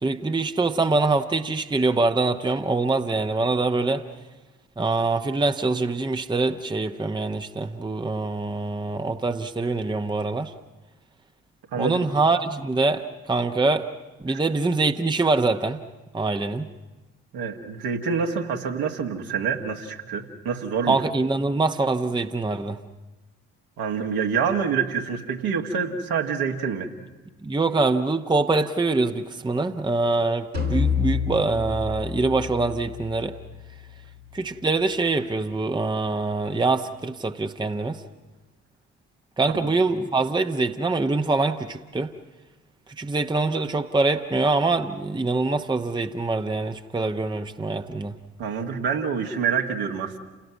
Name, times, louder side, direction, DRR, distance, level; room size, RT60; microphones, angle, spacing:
voice 1, 0.0-4.1 4.8-10.5 11.8-13.9 14.2-15.8 16.1-16.7 20.9-22.8 27.4-33.3 34.3-38.0 39.4-42.1 43.0-48.1, right 3 dB, 10° right, 7 dB, 1.0 m, -24 dB
voice 2, 11.7-12.1 17.3-21.0 23.8-26.9 39.5-39.7 48.4-50.2, right 6 dB, 60° right, 2 dB, 2.0 m, -26 dB
sound 1, 30.5-36.0, left 6 dB, 90° right, 2.2 m, -30 dB
29.5 x 17.5 x 6.0 m, 1.1 s
figure-of-eight pair, 40°, 41 cm